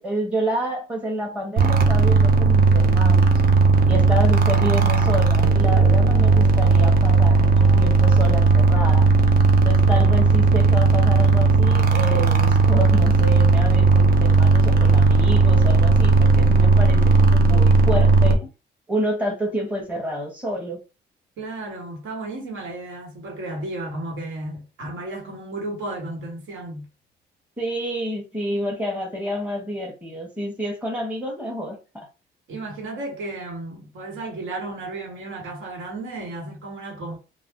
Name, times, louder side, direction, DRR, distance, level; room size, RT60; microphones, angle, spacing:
voice 1, 0.0-3.3 3.9-9.1 9.6-18.5 18.9-20.8 27.6-32.1, equal, 5° right, 0.8 m, -29 dB
sound 1, 1.6-18.3, right 3 dB, 50° right, 0.6 m, -16 dB
voice 2, 21.4-26.9 32.5-37.2, right 2 dB, 80° right, 1.4 m, -33 dB
2.4 x 2.2 x 3.6 m
cardioid pair, 90°, 20 cm